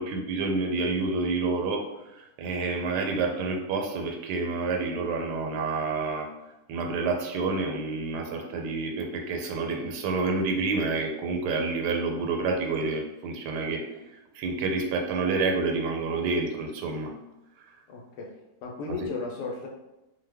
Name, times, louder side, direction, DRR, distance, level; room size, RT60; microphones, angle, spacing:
voice 1, 0.0-1.8 2.2-6.3 6.7-13.8 14.3-17.1, right 3 dB, 80° right, 2 dB, 1.1 m, -28 dB
voice 2, 17.9-18.3 18.6-19.7, left 4 dB, 80° left, -1 dB, 1.2 m, -35 dB
2.7 x 2.2 x 3.3 m, 0.95 s
omnidirectional pair, 1.7 m